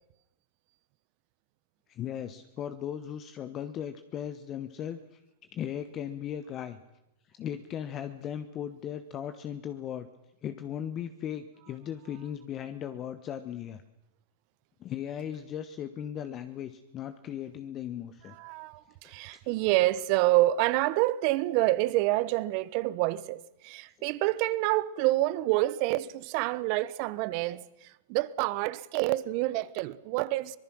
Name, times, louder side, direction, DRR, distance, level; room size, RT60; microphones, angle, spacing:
voice 1, 1.9-5.2 5.5-6.8 7.3-10.1 10.4-13.8 14.8-18.3 19.0-19.5, left 9 dB, 30° left, 1.2 m, -37 dB
voice 2, 18.4-30.6, right 17 dB, 45° right, 1.0 m, -27 dB
25.0 x 19.5 x 6.3 m
hypercardioid pair, 135°, 0 cm